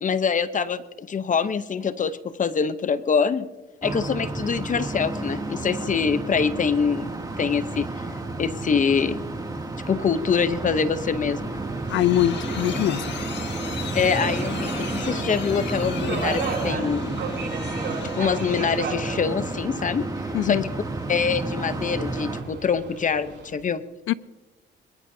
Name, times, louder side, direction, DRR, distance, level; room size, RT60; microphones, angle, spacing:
voice 1, 0.0-3.5 3.8-7.1 7.4-8.1 8.4-9.2 9.9-11.5 13.9-17.3 18.2-20.1 20.4-20.6 21.1-23.8, left 6 dB, 40° left, 0.9 m, -24 dB
sound 1, 3.8-22.4, right 2 dB, 20° right, 2.5 m, -31 dB
Subway metro underground, 9.9-23.5, right 5 dB, 65° right, 6.7 m, -37 dB
sound 2, 11.5-19.0, left 7 dB, 65° left, 1.8 m, -38 dB
voice 2, 11.9-13.0 20.3-20.6 24.1-24.2, left 13 dB, 85° left, 0.5 m, -22 dB
22.5 x 21.5 x 2.8 m
cardioid pair, 90°, 20 cm